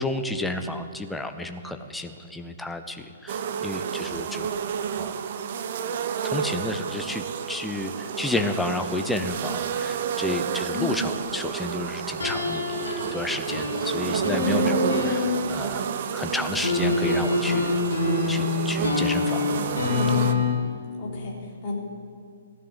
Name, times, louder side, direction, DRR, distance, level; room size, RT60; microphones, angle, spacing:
voice 1, 0.0-4.5 5.0-5.1 6.2-12.8 13.1-14.6 15.0-15.8 16.1-17.8 18.3-19.8, left 2 dB, 5° left, 7 dB, 0.8 m, -31 dB
sound 1, 3.3-20.3, right 7 dB, 45° right, 0.9 m, -30 dB
voice 2, 10.7-11.0 14.3-14.7 19.9-20.4 21.0-21.8, left 2 dB, 30° left, -2 dB, 3.5 m, -32 dB
sound 2, 12.2-15.7 16.6-20.5, left 4 dB, 65° left, 4.4 m, -26 dB
16.5 x 11.0 x 7.8 m, 2.3 s
figure-of-eight pair, 125°, 0 cm